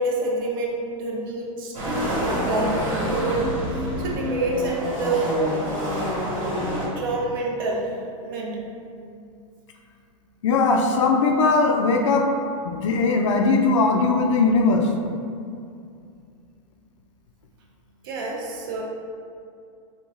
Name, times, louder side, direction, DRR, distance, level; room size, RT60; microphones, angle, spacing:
voice 1, 0.0-2.1 2.5-5.5 7.0-7.9 8.2-8.7 18.0-18.8, right 2 dB, 40° right, -1 dB, 0.5 m, -27 dB
sound 1, 1.7-6.9, equal, 85° right, 1.5 m, -27 dB
voice 2, 10.4-12.3 12.6-14.9, left 3 dB, 60° left, 3 dB, 0.4 m, -19 dB
3.0 x 2.3 x 3.6 m, 2.4 s
supercardioid pair, 170°, 17 cm